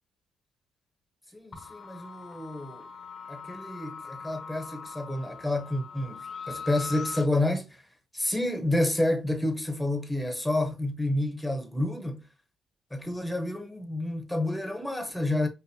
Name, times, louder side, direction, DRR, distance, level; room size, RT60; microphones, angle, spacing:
voice 1, 1.3-2.8 3.3-7.7 8.1-12.2 12.9-15.5, left 1 dB, 5° left, 0.8 m, -29 dB
sound 1, 1.5-7.3, left 5 dB, 40° left, 0.6 m, -41 dB
5.2 x 2.1 x 2.7 m
cardioid pair, 90°, 0 cm